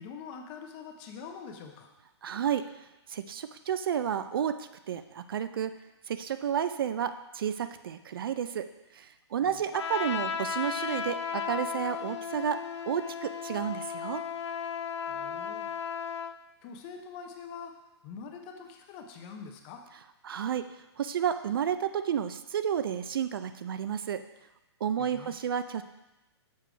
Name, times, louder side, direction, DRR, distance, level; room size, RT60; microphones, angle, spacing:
voice 1, 0.0-1.9 9.4-9.6 15.1-15.7 16.6-17.7 18.0-19.8 25.0-25.3, left 6 dB, 20° left, 4 dB, 0.5 m, -44 dB
voice 2, 2.2-2.7 3.1-5.7 6.1-8.7 8.9-12.6 12.9-14.2 20.2-20.7 21.0-24.2 24.8-25.8, right 8 dB, 55° right, 11 dB, 0.4 m, -31 dB
Trumpet, 9.7-16.4, left 7 dB, 75° left, 0.5 m, -35 dB
6.9 x 4.6 x 5.0 m, 0.99 s
hypercardioid pair, 165°, 15 cm